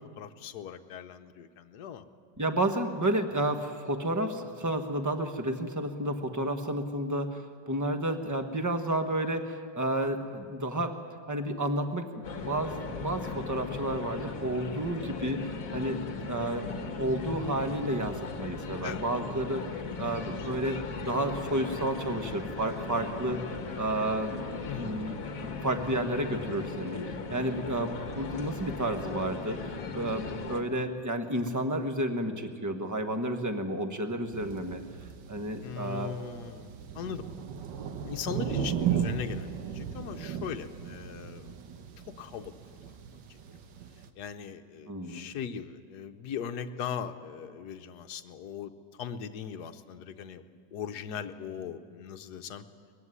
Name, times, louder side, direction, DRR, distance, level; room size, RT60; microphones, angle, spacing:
voice 1, 0.2-2.0 18.8-19.0 24.7-24.9 35.6-37.3 38.0-41.5 42.0-42.5 44.2-48.7 49.0-50.4 50.7-52.6, left 8 dB, 65° left, 8 dB, 1.4 m, -39 dB
voice 2, 2.4-10.9 11.3-15.4 15.7-20.8 21.0-23.4 23.8-24.4 24.8-27.0 27.3-29.6 29.9-34.8 35.3-36.2 44.9-45.3, right 1 dB, 10° right, 6 dB, 1.0 m, -31 dB
sound 1, 12.2-30.6, left 4 dB, 50° left, 1.6 m, -38 dB
sound 2, 34.3-44.1, right 8 dB, 80° right, 1.7 m, -36 dB
21.0 x 15.5 x 9.8 m, 2.1 s
omnidirectional pair, 1.9 m